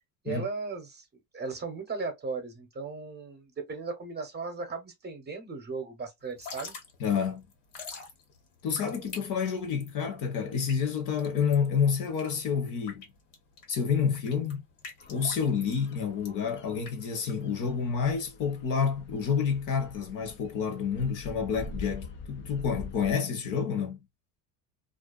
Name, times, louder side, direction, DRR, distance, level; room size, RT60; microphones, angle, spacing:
voice 1, 0.2-1.0 1.3-6.8, right 4 dB, 25° right, 0.8 m, -36 dB
Drip / Trickle dribble, 6.2-17.8, left 4 dB, 75° left, 1.4 m, -47 dB
voice 2, 7.0-7.4 8.6-13.0 13.7-14.6 15.1-24.0, left 6 dB, 50° left, 0.9 m, -29 dB
sound 1, 15.0-23.1, left 4 dB, 30° left, 0.4 m, -45 dB
2.5 x 2.2 x 2.3 m
supercardioid pair, 110°, 40 cm